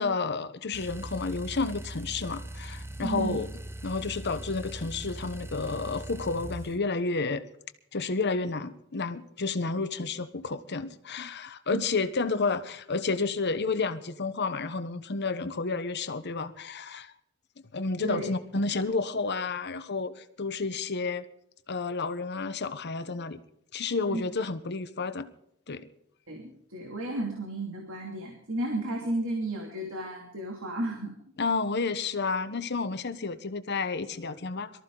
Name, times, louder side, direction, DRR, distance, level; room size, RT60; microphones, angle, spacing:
voice 1, 0.0-3.5 3.8-7.4 7.9-17.1 17.7-21.2 21.7-23.4 23.7-25.3 25.7-25.9 31.4-34.7, left 4 dB, 55° left, 1.0 m, -31 dB
sound 1, 0.7-6.8, right 1 dB, 10° right, 0.8 m, -40 dB
voice 2, 3.0-3.4 11.7-11.9 18.0-18.3 24.1-24.2 26.3-31.1, right 2 dB, 70° right, 2.7 m, -33 dB
23.5 x 14.0 x 3.9 m
head